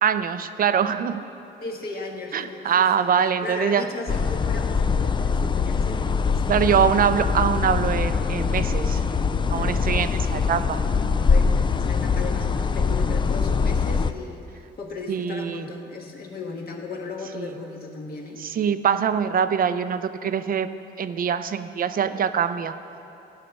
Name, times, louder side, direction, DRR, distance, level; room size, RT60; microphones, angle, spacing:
voice 1, 0.0-1.3 2.3-3.9 6.5-9.0 9.5-10.8 15.1-15.7 17.4-17.5 18.4-20.7 21.0-22.7, right 7 dB, 45° right, 11 dB, 0.5 m, -23 dB
voice 2, 1.6-6.9 9.6-10.5 11.3-11.5 11.8-14.5 14.8-18.4, left 3 dB, 50° left, 0 dB, 1.6 m, -36 dB
sound 1, 4.1-14.1, left 5 dB, 25° left, 0.3 m, -23 dB
14.5 x 5.8 x 5.3 m, 2.8 s
cardioid pair, 90°, 20 cm